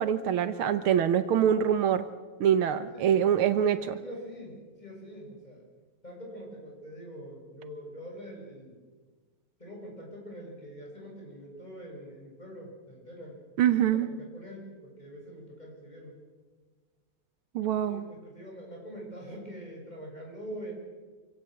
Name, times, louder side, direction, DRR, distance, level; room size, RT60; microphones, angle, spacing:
voice 1, 0.0-2.1 2.4-4.0 13.6-14.1 17.6-18.0, right 9 dB, 80° right, 11 dB, 1.8 m, -24 dB
voice 2, 2.9-5.6 6.0-8.8 9.6-16.2 17.8-20.7, equal, 20° left, -1 dB, 6.9 m, -44 dB
26.5 x 16.5 x 7.8 m, 1.4 s
omnidirectional pair, 2.3 m